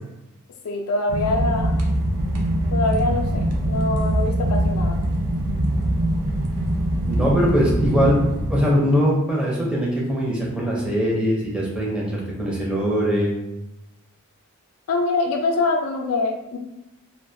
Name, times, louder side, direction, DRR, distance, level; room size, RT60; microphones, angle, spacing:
voice 1, 0.6-1.7 2.7-5.0 14.9-16.6, left 3 dB, 75° left, 3 dB, 0.4 m, -24 dB
sound 1, 1.1-8.6, right 1 dB, 80° right, 0.5 m, -23 dB
voice 2, 7.1-8.2 8.5-13.3, equal, 5° right, -4 dB, 0.4 m, -21 dB
2.3 x 2.1 x 2.6 m, 0.94 s
head